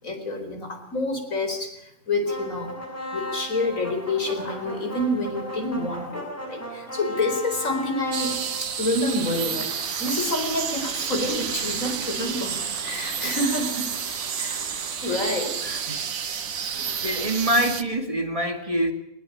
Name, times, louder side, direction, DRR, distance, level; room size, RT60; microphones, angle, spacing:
voice 1, 0.0-2.7 3.1-9.7 10.0-13.9 14.4-14.7 15.0-15.6 16.6-16.7, left 2 dB, 80° left, 5 dB, 4.9 m, -28 dB
sound 1, 2.3-16.4, equal, 10° left, 5.8 m, -38 dB
sound 2, 8.1-17.8, right 7 dB, 90° right, 1.6 m, -30 dB
voice 2, 15.6-16.0 16.7-18.9, right 1 dB, 25° right, 6 dB, 2.3 m, -25 dB
20.5 x 20.0 x 8.8 m, 0.81 s
omnidirectional pair, 1.4 m